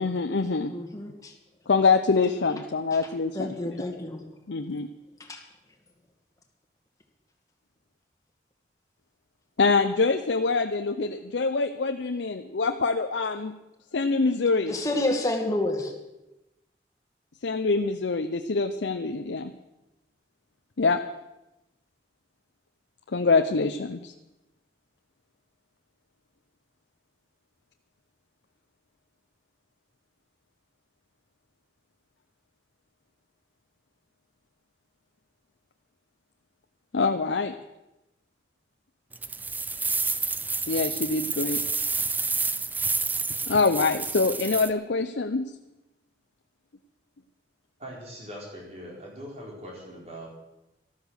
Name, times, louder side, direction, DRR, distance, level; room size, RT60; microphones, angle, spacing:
voice 1, 0.0-0.7 1.7-3.5 4.5-4.9 9.6-13.5 13.9-14.7 17.4-19.5 20.8-21.0 23.1-24.1 36.9-37.5 40.7-41.6 43.4-45.5, left 4 dB, 80° left, 7 dB, 0.7 m, -25 dB
voice 2, 0.7-1.4 2.9-4.2 5.2-5.4 14.7-15.9, left 1 dB, 20° left, 2 dB, 2.1 m, -30 dB
sound 1, 39.1-44.7, right 4 dB, 10° right, 0.4 m, -29 dB
voice 3, 47.8-50.3, equal, 35° right, -2 dB, 4.4 m, -41 dB
13.0 x 13.0 x 6.4 m, 0.96 s
head